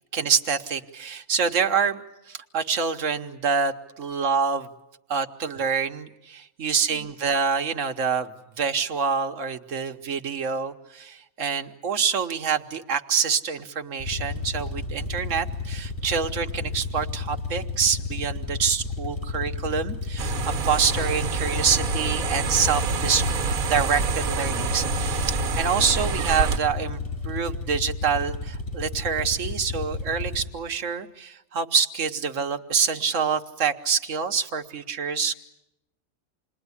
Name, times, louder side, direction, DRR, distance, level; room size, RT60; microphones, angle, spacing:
voice 1, 0.1-4.7 5.1-8.3 8.6-20.4 20.6-23.2 23.7-35.3, right 6 dB, 60° right, 6 dB, 1.5 m, -26 dB
sound 1, 14.0-30.5, left 3 dB, 35° left, 5.8 m, -32 dB
sound 2, 20.2-26.6, right 4 dB, 75° right, 1.7 m, -27 dB
28.0 x 21.0 x 9.8 m, 0.91 s
omnidirectional pair, 1.5 m